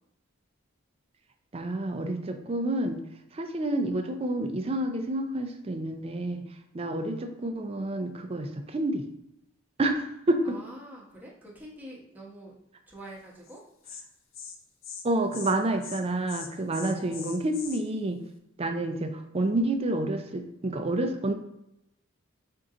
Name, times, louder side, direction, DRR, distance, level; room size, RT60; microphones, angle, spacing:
voice 1, 1.5-3.0 3.3-6.4 6.7-9.0 9.8-10.6 15.0-18.2 18.6-21.3, right 1 dB, 30° right, 6 dB, 0.4 m, -29 dB
voice 2, 10.4-12.5 12.9-13.6 16.8-17.3, right 1 dB, 10° right, -5 dB, 1.0 m, -45 dB
Insect, 13.5-13.6 13.8-14.0 14.3-14.6 14.8-15.0 15.3-15.5 15.8-16.0 16.3-17.8, left 6 dB, 80° left, 0.5 m, -41 dB
4.5 x 2.6 x 3.7 m, 0.82 s
head